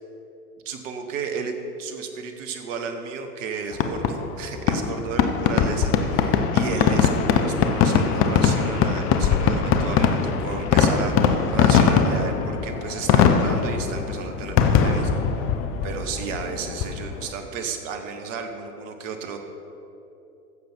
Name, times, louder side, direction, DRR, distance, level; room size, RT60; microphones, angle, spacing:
voice 1, 0.6-1.5 1.8-15.5 15.8-19.4, right 5 dB, 50° right, 6 dB, 1.4 m, -33 dB
Fireworks, 3.7-17.3, left 6 dB, 30° left, 0.7 m, -21 dB
14.5 x 7.5 x 4.5 m, 2.9 s
figure-of-eight pair, 100°, 47 cm